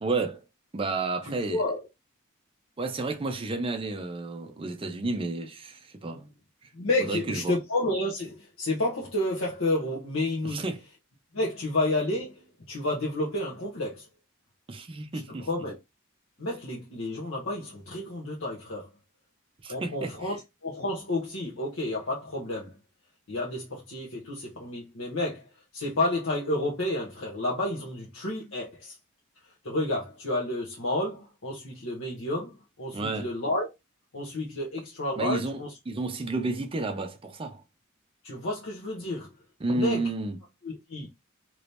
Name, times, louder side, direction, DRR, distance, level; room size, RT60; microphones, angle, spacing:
voice 1, 0.0-0.4 0.7-1.6 2.8-6.2 7.1-7.6 10.4-10.8 14.7-15.5 19.6-20.4 32.9-33.3 35.2-37.6 39.6-40.4, right 3 dB, 25° right, 0.5 m, -31 dB
voice 2, 1.2-1.8 6.1-6.2 6.7-10.6 11.3-14.1 15.3-15.8 16.4-18.9 19.7-20.4 20.6-22.7 23.3-25.4 25.7-28.9 29.6-33.7 34.1-35.7 38.2-39.3 39.7-40.0 40.6-41.1, left 1 dB, 70° left, 1.0 m, -30 dB
3.0 x 2.7 x 3.3 m
head